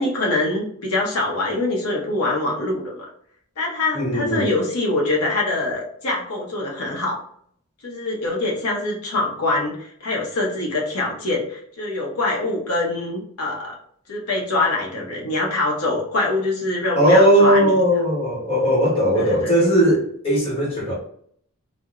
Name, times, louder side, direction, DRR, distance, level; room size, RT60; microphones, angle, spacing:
voice 1, 0.0-3.1 3.6-7.2 7.8-13.8 14.1-17.7 19.1-19.5, left 2 dB, 85° left, -2 dB, 0.7 m, -24 dB
voice 2, 3.9-4.5 17.0-20.9, equal, 25° left, -7 dB, 1.1 m, -18 dB
2.3 x 2.0 x 2.8 m, 0.64 s
head